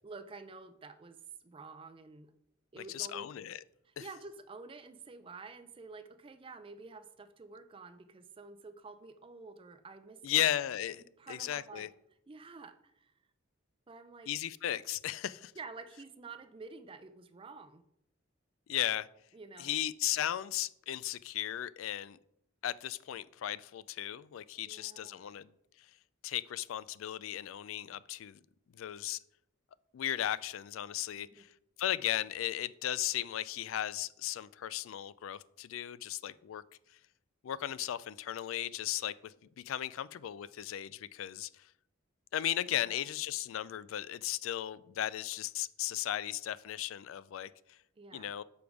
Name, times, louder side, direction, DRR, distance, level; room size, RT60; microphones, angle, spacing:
voice 1, 0.0-1.2 1.4-2.3 2.7-3.3 4.0-10.5 11.2-11.9 12.3-13.1 13.9-14.3 15.6-17.8 19.3-19.8 24.6-25.3 31.2-31.4 42.7-43.0 48.0-48.3, right 4 dB, 25° right, 0.4 m, -49 dB
voice 2, 2.9-3.6 4.0-4.1 10.2-11.9 14.3-15.5 18.7-19.1 19.6-22.2 22.6-25.5 26.2-28.4 28.7-29.2 29.9-31.5 31.8-36.6 37.4-41.6 42.3-47.8 48.1-48.4, left 12 dB, 90° left, 0.3 m, -36 dB
7.0 x 5.1 x 4.7 m
head